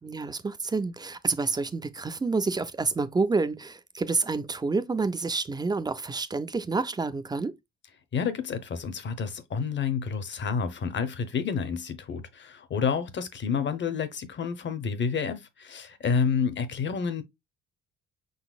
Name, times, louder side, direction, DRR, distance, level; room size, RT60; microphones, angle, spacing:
voice 1, 0.0-7.5, right 3 dB, 15° right, 0.4 m, -28 dB
voice 2, 8.1-17.2, left 6 dB, 35° left, 0.8 m, -29 dB
5.5 x 4.0 x 2.3 m
cardioid pair, 120°, 31 cm